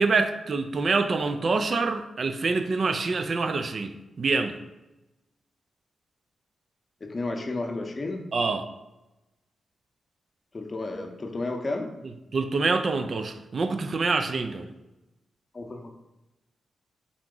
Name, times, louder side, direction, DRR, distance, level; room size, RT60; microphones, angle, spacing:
voice 1, 0.0-4.5 8.3-8.7 12.3-14.7, right 4 dB, 50° right, 8 dB, 0.3 m, -26 dB
voice 2, 7.0-8.2 10.5-11.9 15.5-15.9, left 2 dB, 35° left, 3 dB, 0.6 m, -32 dB
3.6 x 2.9 x 3.7 m, 0.99 s
cardioid pair, 70°, 0 cm